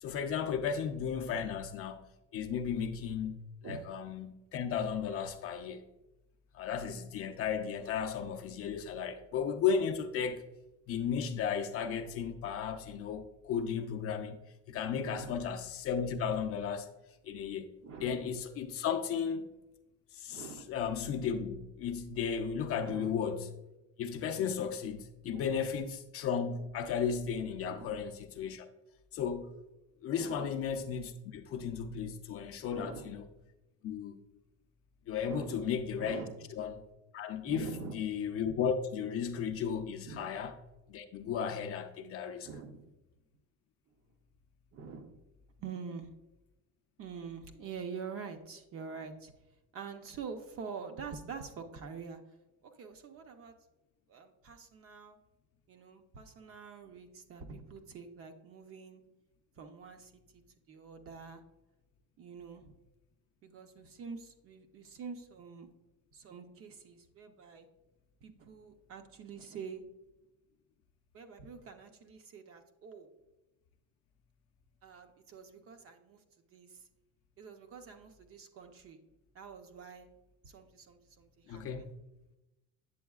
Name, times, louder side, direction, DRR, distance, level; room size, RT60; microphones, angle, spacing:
voice 1, 0.0-2.1 2.3-5.8 6.5-10.5 10.9-14.4 14.7-16.9 17.2-17.7 18.0-19.5 20.1-23.5 24.0-28.7 29.1-29.5 30.0-33.3 33.8-34.1 35.1-36.2 36.6-36.8 37.1-40.5 40.9-42.5 81.5-81.8, left 7 dB, 40° left, 0.5 m, -35 dB
voice 2, 15.0-15.4 17.8-18.3 20.3-20.7 22.8-23.2 25.3-25.7 27.6-28.0 30.2-30.5 32.7-33.1 35.2-36.5 37.4-38.0 40.0-40.3 42.4-43.0 43.9-44.0 44.7-45.2 45.6-46.2 47.0-49.3 49.7-52.2 52.6-53.5 54.1-55.2 55.7-59.0 59.6-60.4 60.7-61.4 62.2-62.8 63.4-65.7 66.1-67.7 68.2-69.8 71.1-73.1 74.8-76.2 76.5-76.8 77.4-79.0 79.3-80.1 80.4-81.9, right 5 dB, 40° right, 0.6 m, -46 dB
8.3 x 7.0 x 2.3 m
cardioid pair, 140°, 36 cm